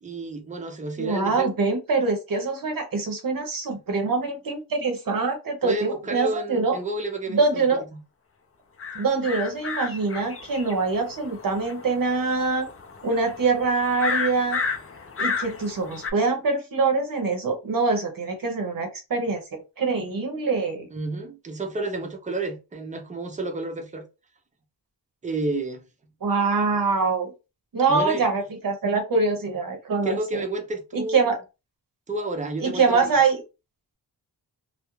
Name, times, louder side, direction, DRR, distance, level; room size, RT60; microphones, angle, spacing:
voice 1, 0.0-1.5 5.6-7.8 20.9-24.0 25.2-25.8 27.9-28.2 30.0-31.2 32.1-33.2, right 2 dB, 20° right, 0.5 m, -30 dB
voice 2, 1.0-6.8 7.3-7.8 8.9-12.7 13.0-14.6 15.2-19.4 19.8-20.9 26.2-27.3 27.7-30.4 30.9-31.4 32.6-33.4, right 4 dB, 55° right, 0.7 m, -24 dB
sound 1, 8.8-16.1, left 5 dB, 35° left, 0.5 m, -32 dB
2.3 x 2.1 x 3.0 m
wide cardioid pair, 130°, 41 cm